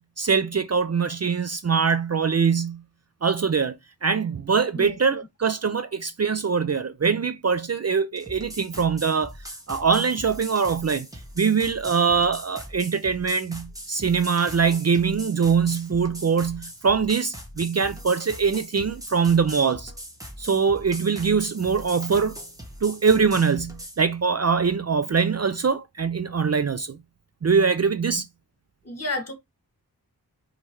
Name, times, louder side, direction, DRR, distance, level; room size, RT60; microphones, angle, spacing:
voice 1, 0.0-2.8 3.2-3.8 4.0-9.3 9.7-11.1 11.4-19.9 20.4-22.4 22.8-27.0 27.4-28.3, right 5 dB, 45° right, 0.5 m, -23 dB
sound 1, 8.2-24.0, equal, 10° right, 1.4 m, -41 dB
voice 2, 28.8-29.3, left 2 dB, 40° left, 1.8 m, -30 dB
5.4 x 3.2 x 3.1 m
wide cardioid pair, 70°, 37 cm